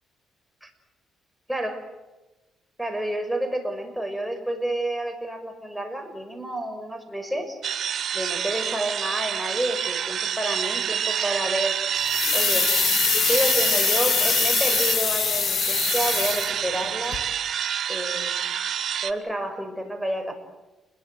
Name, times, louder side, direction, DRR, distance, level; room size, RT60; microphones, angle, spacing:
voice 1, 1.5-1.8 2.8-7.6 8.1-11.8 12.3-12.7 13.2-17.2 17.9-18.4 18.7-20.3, right 1 dB, 5° right, 5 dB, 6.1 m, -29 dB
sound 1, 7.6-19.1, right 9 dB, 65° right, 1.2 m, -28 dB
sound 2, 12.0-16.9 17.1-17.2, left 7 dB, 55° left, 2.2 m, -23 dB
29.0 x 22.0 x 8.1 m, 1.1 s
cardioid pair, 90°, 0 cm